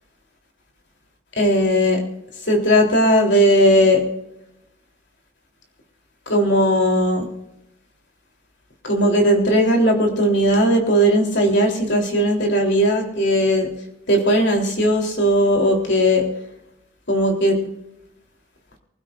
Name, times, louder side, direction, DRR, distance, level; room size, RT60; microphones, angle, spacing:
voice 1, 1.4-2.0 2.5-4.0 6.3-7.3 8.8-13.7 14.1-16.2 17.1-17.6, equal, 60° left, 1 dB, 3.6 m, -17 dB
24.5 x 15.5 x 2.6 m, 0.88 s
head